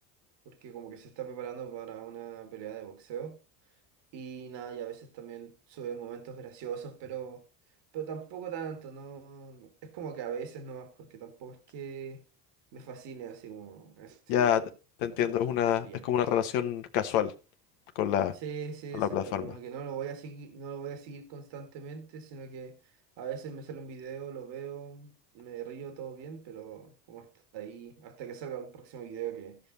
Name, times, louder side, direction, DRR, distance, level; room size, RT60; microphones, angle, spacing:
voice 1, 0.5-3.4 4.1-7.4 7.9-12.2 12.7-14.7 15.0-16.1 18.3-27.3 27.5-29.6, right 7 dB, 65° right, 2.0 m, -41 dB
voice 2, 14.3-14.6 15.0-17.3 17.9-18.3 18.9-19.5, left 9 dB, 75° left, 1.1 m, -27 dB
15.5 x 5.4 x 4.0 m
hypercardioid pair, 75°, 46 cm